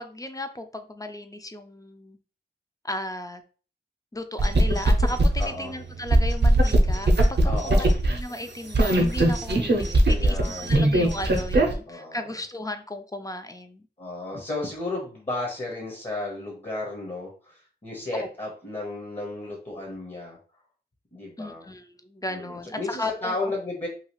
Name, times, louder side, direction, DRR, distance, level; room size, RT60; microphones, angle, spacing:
voice 1, 0.0-2.2 2.8-3.4 4.1-13.9 18.1-18.3 21.4-23.3, left 1 dB, 20° left, 8 dB, 0.4 m, -35 dB
sound 1, 4.4-8.2 8.7-11.7, right 1 dB, 75° right, 0.6 m, -20 dB
voice 2, 5.4-5.7 7.4-7.9 10.1-10.8 11.9-12.3 14.0-20.4 21.1-21.7 22.3-23.9, left 2 dB, 35° left, -1 dB, 0.9 m, -33 dB
2.8 x 2.3 x 2.9 m, 0.38 s
wide cardioid pair, 50°, 18 cm